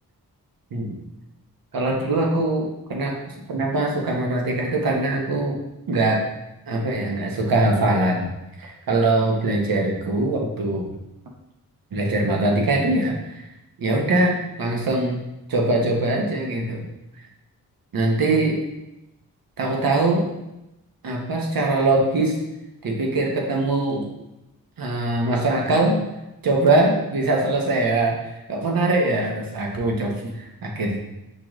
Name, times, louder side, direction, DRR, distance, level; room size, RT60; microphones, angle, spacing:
voice 1, 1.7-5.6 5.9-6.2 6.7-8.3 8.6-10.9 11.9-13.5 13.8-15.2 15.5-16.8 17.2-17.3 17.9-18.6 19.6-20.3 21.0-22.4 22.8-24.1 24.8-26.0 26.4-31.0, right 2 dB, 65° right, 0 dB, 1.0 m, -22 dB
5.8 x 3.0 x 2.4 m, 0.94 s
cardioid pair, 55°, 38 cm